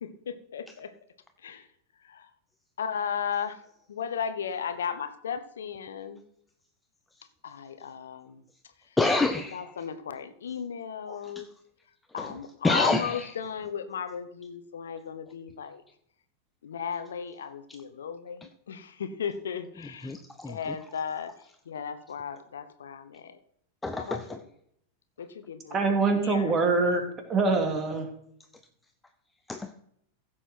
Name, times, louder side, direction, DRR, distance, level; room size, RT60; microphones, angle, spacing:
voice 1, 0.0-0.9 1.4-1.6 2.0-2.3 2.8-3.6 3.9-6.2 7.4-8.4 9.5-11.4 12.1-15.8 16.6-20.1 20.5-21.3 21.7-23.4 23.9-24.2 25.2-26.5 26.9-27.0, left 7 dB, 65° left, 11 dB, 1.0 m, -35 dB
voice 2, 9.0-9.9 11.1-11.5 12.2-13.3 17.7-17.8 19.8-20.8 23.8-24.4 29.5-29.7, left 3 dB, 10° left, 6 dB, 0.8 m, -29 dB
voice 3, 25.7-27.0 27.3-28.1, right 3 dB, 25° right, 4 dB, 2.6 m, -24 dB
15.5 x 7.5 x 4.5 m, 0.71 s
figure-of-eight pair, 90°, 0 cm